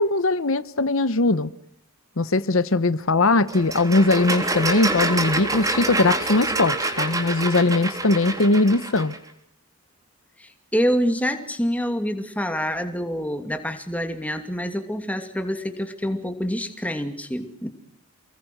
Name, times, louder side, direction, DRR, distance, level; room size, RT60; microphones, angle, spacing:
voice 1, 0.0-1.5 2.2-9.1, left 2 dB, 60° left, 13 dB, 1.0 m, -20 dB
sound 1, 3.5-9.2, right 2 dB, 15° right, 3.4 m, -26 dB
voice 2, 10.4-17.7, equal, 5° left, 7 dB, 2.7 m, -26 dB
29.5 x 21.0 x 6.3 m, 0.68 s
head